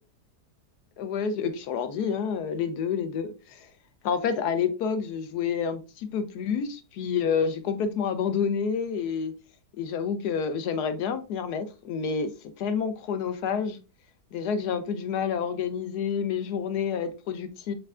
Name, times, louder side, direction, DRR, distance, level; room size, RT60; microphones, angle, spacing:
voice 1, 1.0-3.7 4.0-9.3 9.8-12.3 12.6-13.8 14.3-17.7, left 6 dB, 75° left, 1.2 m, -28 dB
5.6 x 3.6 x 2.4 m
omnidirectional pair, 1.8 m